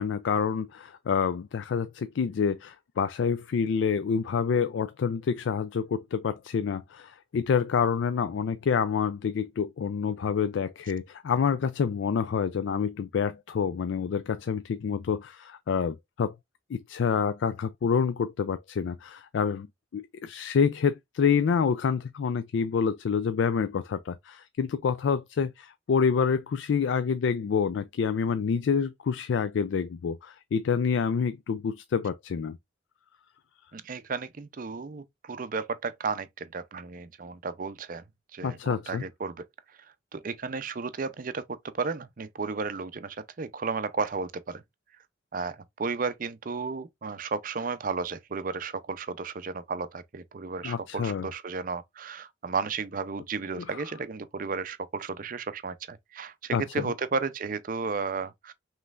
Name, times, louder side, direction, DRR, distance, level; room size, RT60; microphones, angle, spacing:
voice 1, 0.0-16.4 16.7-19.7 19.9-32.6 38.4-39.0 50.6-51.3 53.6-53.8 56.5-56.9, left 6 dB, 85° left, 0.4 m, -27 dB
voice 2, 33.7-38.0 38.3-39.4 40.1-44.6 45.3-58.5, right 4 dB, 50° right, 0.5 m, -33 dB
5.3 x 3.1 x 2.4 m
head